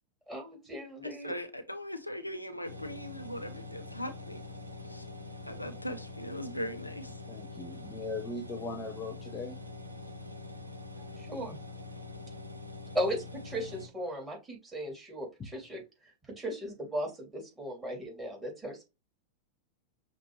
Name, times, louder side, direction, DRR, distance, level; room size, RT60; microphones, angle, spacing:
voice 1, 0.3-1.3 11.2-11.6 12.9-15.8 16.4-18.9, equal, 10° right, 2.7 m, -37 dB
voice 2, 1.0-4.4 4.8-5.0 5.4-7.2, equal, 85° left, 0.6 m, -39 dB
sound 1, 2.6-13.9, left 3 dB, 80° right, 0.8 m, -44 dB
voice 3, 7.3-9.6, left 3 dB, 20° left, 0.7 m, -39 dB
5.9 x 2.8 x 3.2 m
figure-of-eight pair, 90°, 0 cm